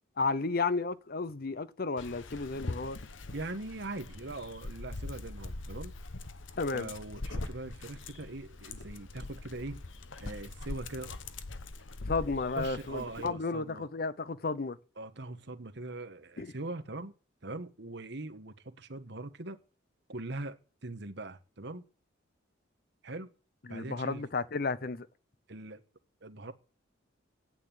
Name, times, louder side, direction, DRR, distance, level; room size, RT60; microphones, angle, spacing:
voice 1, 0.2-3.0 6.6-6.9 12.1-14.8 16.4-16.5 23.7-25.1, left 4 dB, 50° left, 0.7 m, -33 dB
Dog, 2.0-13.3, left 2 dB, 75° left, 1.1 m, -42 dB
voice 2, 3.3-5.9 6.7-9.8 10.2-11.1 12.6-13.9 15.0-17.1 17.4-19.6 20.1-21.8 23.0-23.3 23.7-24.2 25.5-25.8 26.2-26.5, right 2 dB, 60° right, 1.4 m, -41 dB
9.7 x 9.2 x 9.5 m
head